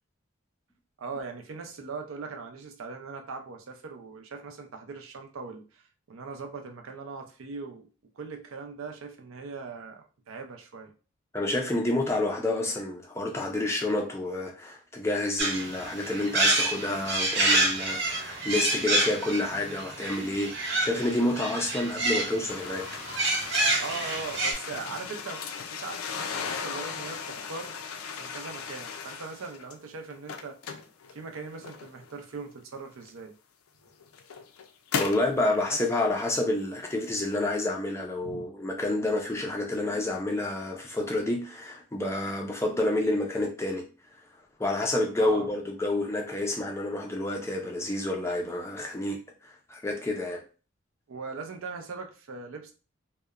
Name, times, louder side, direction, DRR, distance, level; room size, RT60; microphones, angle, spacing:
voice 1, 1.0-7.9 8.2-10.9 23.8-25.4 25.7-27.8 28.2-30.6 31.1-33.3 35.4-35.8 38.2-38.4 45.2-45.5 47.4-47.5 51.1-52.7, right 4 dB, 75° right, 0.5 m, -40 dB
voice 2, 11.3-20.5 20.8-22.8 35.0-43.9 44.6-49.2 49.7-50.4, left 2 dB, 15° left, 0.3 m, -29 dB
sound 1, 15.4-24.5, right 2 dB, 50° right, 0.8 m, -28 dB
sound 2, 22.5-29.7 30.1-32.1 33.0-33.1 33.9-35.3, left 6 dB, 90° left, 0.4 m, -37 dB
2.8 x 2.1 x 2.3 m
head